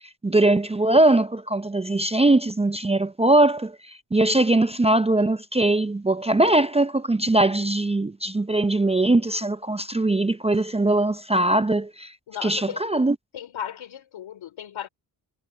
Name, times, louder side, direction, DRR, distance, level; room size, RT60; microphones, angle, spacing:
voice 1, 0.2-12.1 12.4-13.2, right 2 dB, 15° right, 0.6 m, -21 dB
voice 2, 12.3-12.9 13.3-14.9, left 10 dB, 75° left, 3.7 m, -36 dB
cardioid pair, 75°, 47 cm